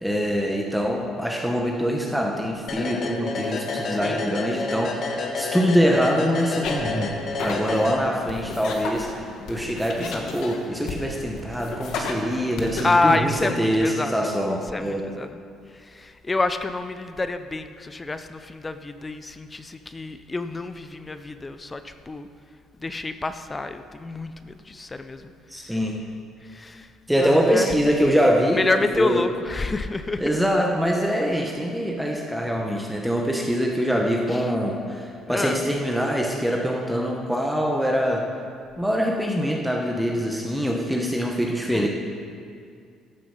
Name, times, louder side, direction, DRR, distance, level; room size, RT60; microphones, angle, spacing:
voice 1, 0.0-4.9 5.4-15.0 25.5-26.0 27.1-28.6 29.0-29.2 30.2-38.2 38.8-41.9, equal, ahead, 0 dB, 1.0 m, -24 dB
sound 1, 2.7-8.5, left 3 dB, 50° left, 1.3 m, -30 dB
voice 2, 3.9-4.3 10.0-10.3 12.8-14.3 14.7-15.4 15.7-22.3 22.8-25.8 26.4-26.9 27.2-27.7 28.5-30.4 34.3-34.5 35.3-35.7 41.7-41.9, left 3 dB, 20° left, 10 dB, 0.5 m, -28 dB
sound 2, 6.6-12.8, left 4 dB, 70° left, 1.3 m, -34 dB
13.0 x 7.2 x 5.6 m, 2.3 s
cardioid pair, 110°, 0 cm